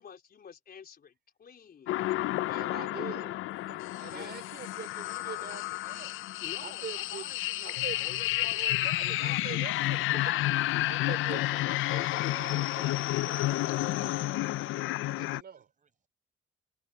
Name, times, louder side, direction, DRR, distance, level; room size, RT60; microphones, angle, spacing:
voice 1, 0.0-1.9 2.4-2.7 3.0-3.4 4.1-4.4 6.4-9.5, left 7 dB, 50° left, 4.3 m, -48 dB
sound 1, 1.9-15.4, left 17 dB, 85° left, 0.5 m, -31 dB
voice 2, 2.5-3.3 3.7-6.2 6.6-14.2 15.2-15.7, right 8 dB, 55° right, 4.4 m, -45 dB
voice 3, 14.1-16.1, right 6 dB, 40° right, 5.8 m, -70 dB
cardioid pair, 90°, 20 cm